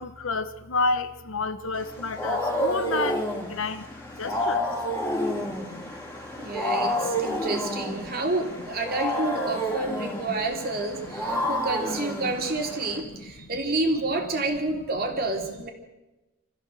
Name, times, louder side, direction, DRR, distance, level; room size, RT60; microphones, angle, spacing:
voice 1, 0.0-3.2 3.5-3.9 4.2-4.7 5.2-5.9 6.7-7.1 9.5-9.6 11.4-11.5 13.4-13.5 14.2-14.3, left 3 dB, 70° left, 1.3 m, -31 dB
Wild animals, 1.8-13.0, equal, 10° left, 3.3 m, -30 dB
voice 2, 5.2-5.7 6.4-15.7, right 2 dB, 45° right, 3.2 m, -29 dB
26.0 x 15.0 x 7.8 m
head